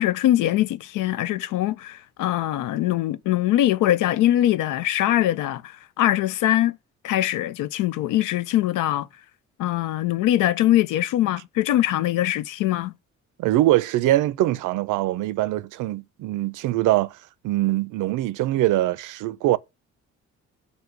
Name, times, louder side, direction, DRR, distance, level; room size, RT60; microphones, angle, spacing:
voice 1, 0.0-6.8 7.0-9.1 9.6-12.9, left 13 dB, 90° left, 0.5 m, -22 dB
voice 2, 13.4-17.2 17.4-19.6, right 15 dB, 85° right, 0.5 m, -22 dB
7.9 x 2.8 x 5.7 m
cardioid pair, 90°, 30 cm